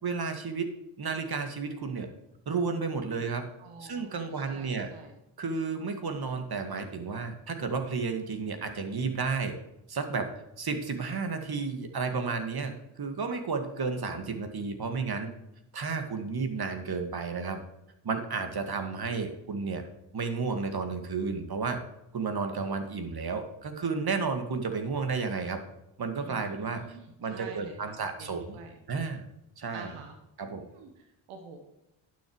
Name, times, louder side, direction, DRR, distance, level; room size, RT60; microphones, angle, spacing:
voice 1, 0.0-0.7 1.0-2.1 2.5-3.5 3.8-4.9 5.4-9.5 9.9-15.3 15.7-17.6 18.0-19.8 20.1-21.8 22.1-25.6 26.0-26.8 27.2-28.6 28.9-29.3 29.6-29.9 30.4-30.7, right 4 dB, 50° right, 7 dB, 2.0 m, -32 dB
voice 2, 3.6-5.1 26.1-28.8 29.7-30.2 30.6-31.6, right 4 dB, 90° right, 4 dB, 1.3 m, -48 dB
11.5 x 6.6 x 4.7 m, 0.88 s
supercardioid pair, 55°, 49 cm